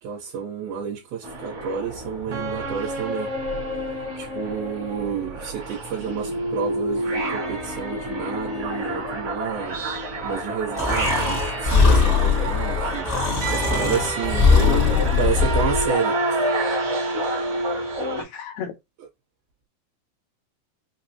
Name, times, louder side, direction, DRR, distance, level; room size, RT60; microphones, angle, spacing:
voice 1, 0.0-3.3 4.2-16.5, right 7 dB, 75° right, 2.7 m, -30 dB
sound 1, 1.2-18.2, right 1 dB, 60° right, 1.4 m, -28 dB
Breathing, 10.8-15.9, left 5 dB, 70° left, 0.6 m, -20 dB
voice 2, 14.5-15.2 18.2-18.7, left 10 dB, 90° left, 1.9 m, -31 dB
5.9 x 2.0 x 2.7 m
omnidirectional pair, 4.4 m